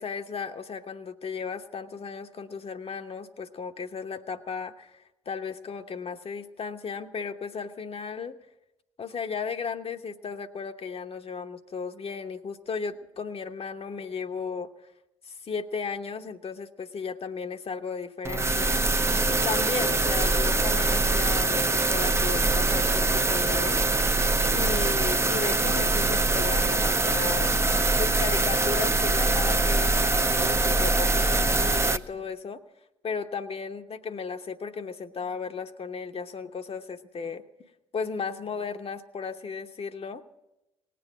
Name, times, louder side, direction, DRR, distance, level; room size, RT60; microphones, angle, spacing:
voice 1, 0.0-8.4 9.0-14.7 15.3-18.8 19.3-23.8 24.5-27.5 28.2-32.6 33.0-37.4 37.9-40.2, left 5 dB, 40° left, 7 dB, 0.9 m, -35 dB
sound 1, 18.2-32.0, right 2 dB, 15° right, 0.6 m, -23 dB
18.5 x 7.8 x 7.7 m, 0.92 s
hypercardioid pair, 45°, 15 cm